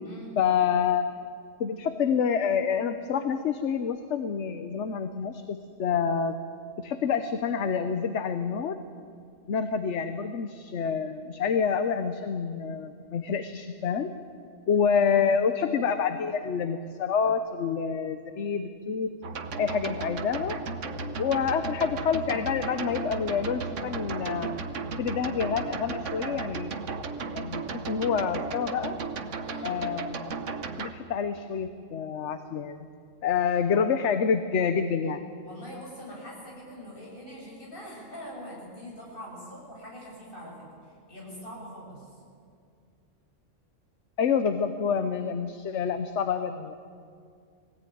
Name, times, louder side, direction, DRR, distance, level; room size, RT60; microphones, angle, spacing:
voice 1, 0.4-1.1 1.6-6.4 6.8-8.8 9.5-14.1 14.7-19.1 19.6-20.6 21.2-24.6 25.0-26.7 27.3-29.0 29.6-30.4 30.8-32.9 33.2-35.3 44.2-46.7, left 6 dB, 65° left, 9 dB, 1.2 m, -27 dB
sound 1, 19.2-30.9, right 4 dB, 75° right, 1.4 m, -35 dB
voice 2, 35.4-40.6 40.8-42.2, equal, 45° left, -4 dB, 7.3 m, -43 dB
21.0 x 17.0 x 9.4 m, 2.2 s
omnidirectional pair, 1.3 m